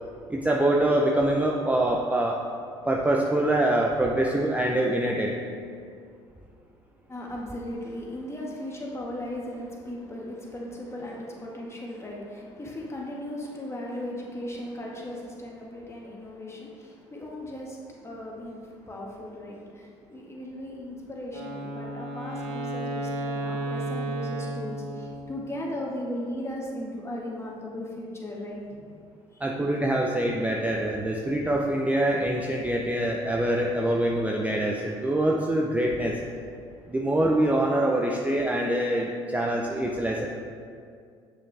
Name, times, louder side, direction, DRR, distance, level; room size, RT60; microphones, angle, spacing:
voice 1, 0.3-2.4 2.9-5.3 29.4-36.2 36.9-40.3, right 1 dB, 10° right, -1 dB, 0.7 m, -24 dB
voice 2, 7.1-17.8 18.0-28.8, left 1 dB, 20° left, -2 dB, 1.8 m, -37 dB
Wind instrument woodwind instrument, 21.3-25.5, right 1 dB, 70° right, 1.1 m, -33 dB
7.9 x 6.5 x 3.4 m, 2.3 s
hypercardioid pair, 60°, 15 cm